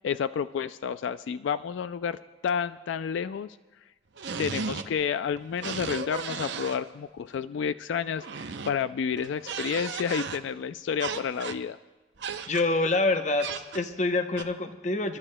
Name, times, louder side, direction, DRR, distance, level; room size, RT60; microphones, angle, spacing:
voice 1, 0.0-3.6 4.4-11.8, left 7 dB, 80° left, 13 dB, 0.3 m, -30 dB
sound 1, 4.2-5.0 5.3-6.8 8.1-8.8 9.1-10.4 11.0-11.6 12.2-12.6 13.4-13.9 14.3-14.4, right 5 dB, 75° right, 0.6 m, -35 dB
voice 2, 12.5-15.2, left 2 dB, 40° left, 7 dB, 0.7 m, -26 dB
29.5 x 12.0 x 2.2 m, 1.2 s
head